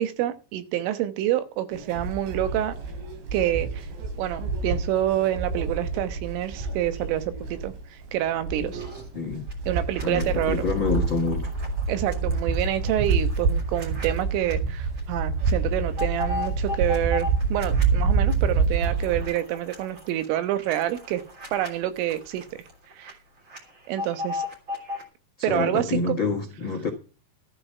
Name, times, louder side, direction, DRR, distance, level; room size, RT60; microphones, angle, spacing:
voice 1, 0.0-2.8 3.3-3.9 4.2-8.8 9.7-10.7 11.9-21.2 21.5-22.5 23.0-23.1 23.9-24.5 25.4-26.0, right 12 dB, 85° right, 3.8 m, -27 dB
sound 1, 1.7-19.2, right 4 dB, 65° right, 4.8 m, -27 dB
sound 2, 8.7-9.1 9.5-14.5 15.0-15.1 15.4-17.8 18.3-23.1 23.4-25.0, left 3 dB, 30° right, 3.6 m, -38 dB
voice 2, 9.1-9.5 10.0-11.5 25.5-26.9, left 4 dB, 75° left, 1.1 m, -27 dB
13.5 x 12.0 x 4.6 m
omnidirectional pair, 5.6 m